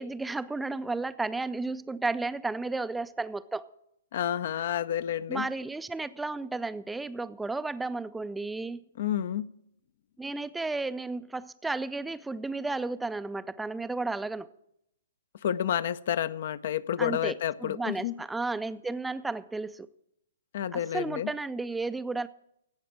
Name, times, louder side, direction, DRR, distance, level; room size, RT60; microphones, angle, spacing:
voice 1, 0.0-3.7 5.3-8.8 10.2-14.5 17.0-19.9 20.7-22.3, right 3 dB, 5° right, 0.4 m, -33 dB
voice 2, 4.1-5.5 9.0-9.5 15.4-18.1 20.5-21.3, left 10 dB, 50° left, 0.5 m, -30 dB
16.0 x 5.9 x 8.7 m
figure-of-eight pair, 120°, 0 cm